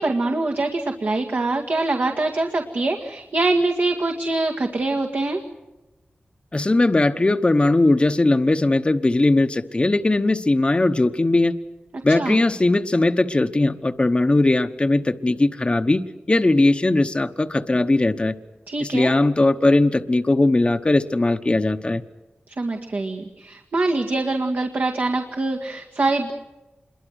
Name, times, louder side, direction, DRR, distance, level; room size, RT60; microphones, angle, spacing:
voice 1, 0.0-5.4 12.1-12.4 18.7-19.1 22.5-26.3, right 2 dB, 65° right, 3 dB, 2.0 m, -24 dB
voice 2, 6.5-11.5 12.0-18.3 18.8-22.0, left 2 dB, 30° left, 8 dB, 1.0 m, -19 dB
27.0 x 22.5 x 6.4 m, 1.1 s
wide cardioid pair, 85°, 4 cm